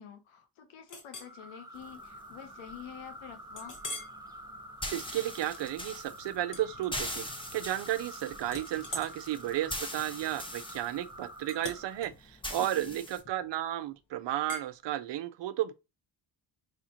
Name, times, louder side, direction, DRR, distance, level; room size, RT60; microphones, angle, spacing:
voice 1, 0.0-3.8 12.6-13.0, left 9 dB, 80° left, 0.9 m, -48 dB
Chink clink, 0.9-1.4 1.9-2.1 2.5-2.6 3.6-4.2 4.7-5.0 6.5-7.4 7.7-8.1 8.5-13.6 14.5-14.7, left 2 dB, 40° left, 1.3 m, -45 dB
sound 1, 1.2-12.0, right 1 dB, 10° right, 0.7 m, -48 dB
sound 2, 1.7-13.2, left 1 dB, 10° left, 1.0 m, -43 dB
voice 2, 4.9-7.2 7.5-15.7, right 13 dB, 60° right, 0.6 m, -33 dB
5.0 x 2.4 x 2.9 m
supercardioid pair, 45°, 48 cm